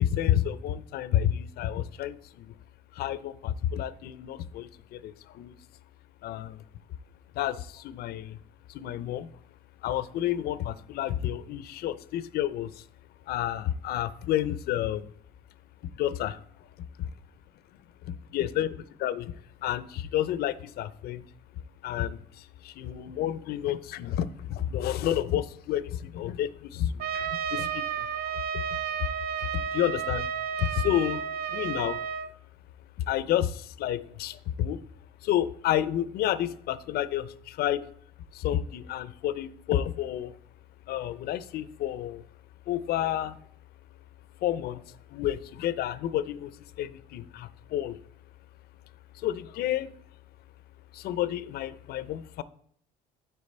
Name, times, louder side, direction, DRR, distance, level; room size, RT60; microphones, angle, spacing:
voice 1, 0.0-2.5 2.9-5.6 6.2-6.6 7.4-8.4 8.7-9.3 9.8-12.8 13.3-15.1 16.0-16.4 17.0-17.1 18.0-19.3 19.6-21.3 21.8-28.6 29.0-29.1 29.4-30.3 30.5-31.2 31.5-32.0 33.0-34.8 35.2-37.9 38.3-40.4 40.9-42.2 42.7-43.4 44.4-48.0 49.1-49.9 50.9-52.4, left 11 dB, 65° left, 16 dB, 0.5 m, -30 dB
Trumpet, 27.0-32.3, right 8 dB, 60° right, 0.5 m, -32 dB
8.5 x 4.5 x 4.2 m, 0.63 s
cardioid pair, 110°, 17 cm